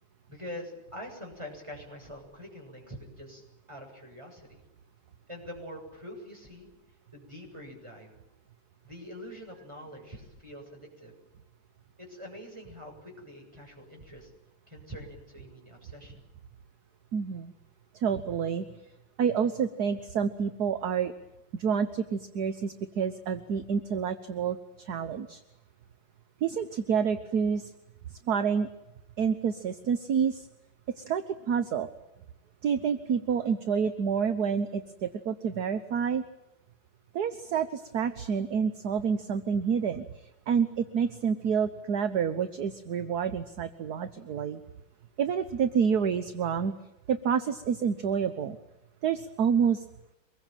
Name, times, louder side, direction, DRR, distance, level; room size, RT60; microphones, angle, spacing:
voice 1, 0.3-4.6 5.3-6.7 7.1-8.1 8.8-11.1 12.0-14.3 14.7-16.3, equal, 15° right, 2 dB, 7.3 m, -44 dB
voice 2, 17.1-17.5 17.9-18.6 19.2-21.1 21.5-25.4 26.4-27.7 28.3-28.7 29.2-30.5 31.0-31.9 32.6-36.2 37.1-44.6 45.2-46.7 47.1-48.6 49.0-49.8, right 7 dB, 55° right, 10 dB, 1.5 m, -28 dB
25.0 x 21.5 x 9.1 m, 0.90 s
omnidirectional pair, 2.2 m